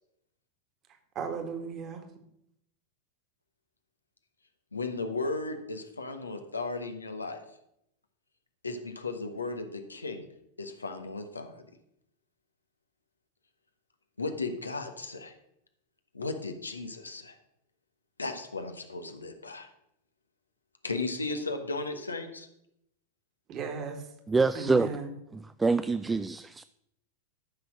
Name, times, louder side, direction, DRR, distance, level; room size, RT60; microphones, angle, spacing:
voice 1, 1.2-2.0 23.5-24.1 24.5-25.1, right 5 dB, 35° right, 5 dB, 1.9 m, -36 dB
voice 2, 4.7-7.4 8.6-10.3 10.6-11.6 14.2-15.3 16.1-17.4 18.2-19.7 20.8-22.5, left 3 dB, 80° left, 7 dB, 1.3 m, -35 dB
voice 3, 24.3-25.0 25.3-26.6, right 3 dB, 10° right, 13 dB, 0.3 m, -26 dB
13.5 x 6.2 x 5.9 m, 0.77 s
figure-of-eight pair, 90°, 0 cm